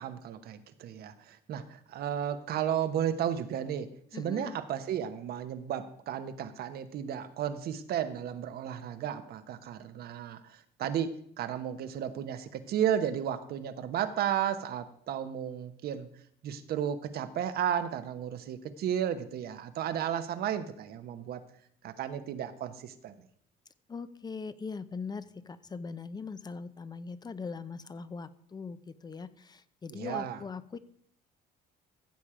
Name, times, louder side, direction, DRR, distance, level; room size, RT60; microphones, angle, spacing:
voice 1, 0.0-16.1 16.4-21.4 21.8-23.1 29.9-30.4, right 9 dB, 65° right, 10 dB, 1.1 m, -33 dB
voice 2, 4.1-4.6 23.9-30.8, left 5 dB, 25° left, 14 dB, 0.7 m, -41 dB
15.0 x 7.4 x 4.9 m, 0.65 s
cardioid pair, 110°, 17 cm